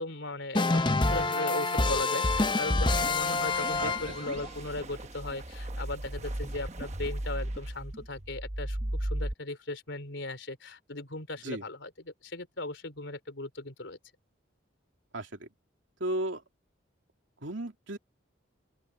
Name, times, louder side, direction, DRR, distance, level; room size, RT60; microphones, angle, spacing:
voice 1, 0.0-14.0, left 2 dB, 70° left, 3.4 m, -38 dB
sound 1, 0.5-4.4, left 3 dB, 25° left, 0.8 m, -27 dB
sound 2, 2.4-9.3, right 1 dB, 35° right, 1.1 m, -37 dB
voice 2, 3.8-4.1 11.4-11.6 15.1-15.5 16.0-16.4 17.4-18.0, right 1 dB, 75° right, 2.9 m, -34 dB
open air
head